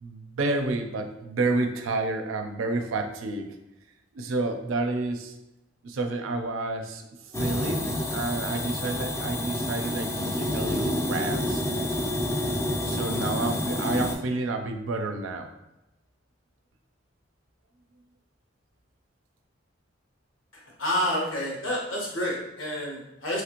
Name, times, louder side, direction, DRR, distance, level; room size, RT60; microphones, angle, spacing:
voice 1, 0.0-3.5 4.1-5.3 5.8-11.6 12.8-15.5, right 2 dB, 90° right, 6 dB, 0.4 m, -30 dB
sound 1, 7.3-14.1, left 1 dB, 15° left, 0.4 m, -28 dB
voice 2, 20.5-23.4, left 1 dB, 90° left, -2 dB, 1.0 m, -29 dB
3.0 x 2.5 x 2.9 m, 0.93 s
head